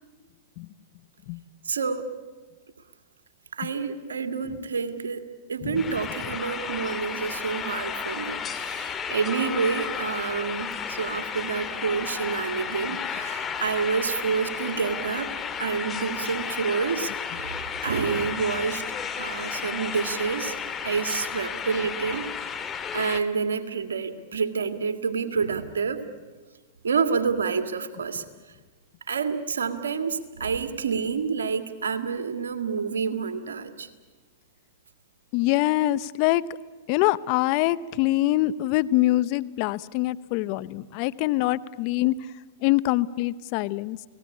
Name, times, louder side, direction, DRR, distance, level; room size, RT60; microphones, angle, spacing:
voice 1, 1.6-2.1 3.5-15.3 15.6-18.8 19.2-20.5 20.8-22.3 22.9-26.0 26.8-28.2 29.1-33.9, right 5 dB, 85° right, 8 dB, 2.1 m, -28 dB
sound 1, 5.8-23.2, left 7 dB, 25° left, 1.9 m, -33 dB
voice 2, 35.3-36.4 36.9-42.1 42.6-44.0, left 17 dB, 50° left, 17 dB, 0.8 m, -24 dB
30.0 x 19.0 x 8.5 m, 1.4 s
hypercardioid pair, 120°, 0 cm